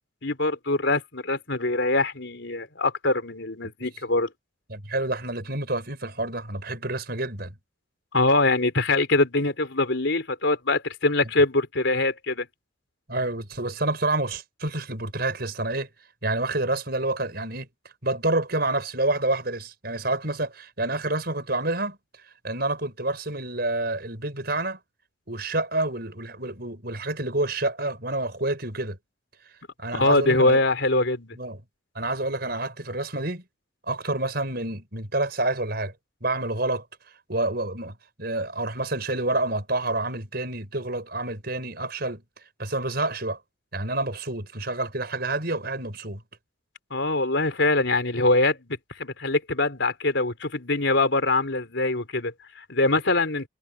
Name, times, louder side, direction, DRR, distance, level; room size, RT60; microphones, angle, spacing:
voice 1, 0.2-4.3 8.1-12.5 30.0-31.4 46.9-53.5, left 2 dB, 65° left, 4.0 m, -23 dB
voice 2, 4.7-7.5 13.1-15.9 16.2-17.7 18.0-22.0 22.4-24.8 25.3-29.0 29.8-30.6 31.3-31.6 31.9-33.4 33.9-35.9 36.2-36.8 37.3-42.2 42.6-43.4 43.7-46.2, right 2 dB, 50° right, 6.0 m, -28 dB
head